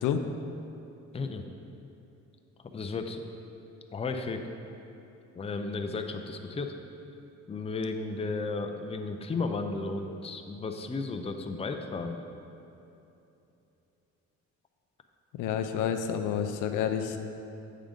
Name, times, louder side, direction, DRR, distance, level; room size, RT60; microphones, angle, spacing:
voice 1, 1.1-1.5 2.7-3.2 3.9-4.4 5.3-6.7 7.5-12.2, left 3 dB, 20° left, 5 dB, 0.5 m, -34 dB
voice 2, 15.4-17.2, left 8 dB, 80° left, 7 dB, 0.5 m, -29 dB
8.5 x 3.8 x 5.2 m, 2.9 s
cardioid pair, 90°, 30 cm